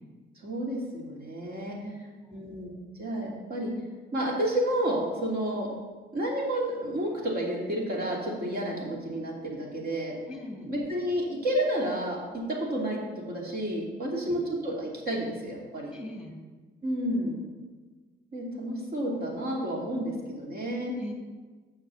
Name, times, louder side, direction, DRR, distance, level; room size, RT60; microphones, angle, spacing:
voice 1, 0.4-1.8 2.3-2.7 3.0-3.7 4.1-5.7 6.1-10.1 10.7-13.0 13.3-15.9 16.8-17.4 18.3-20.9, right 1 dB, 50° right, -2 dB, 2.6 m, -30 dB
voice 2, 1.8-2.5 10.3-10.7 14.0-14.3 15.9-16.3 20.9-21.1, left 1 dB, 5° right, 1 dB, 2.0 m, -41 dB
6.5 x 6.0 x 7.0 m, 1.4 s
cardioid pair, 90°, 20 cm